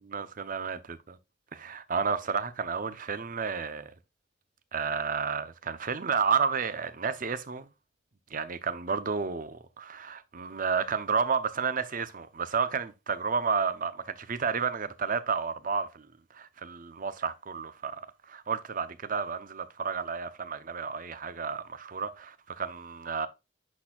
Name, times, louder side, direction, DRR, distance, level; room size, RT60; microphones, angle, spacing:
voice 1, 0.1-1.2 1.5-3.9 4.7-7.7 8.3-16.1 16.3-18.0 18.3-23.3, right 5 dB, 45° right, 0.7 m, -31 dB
10.5 x 4.4 x 2.4 m
head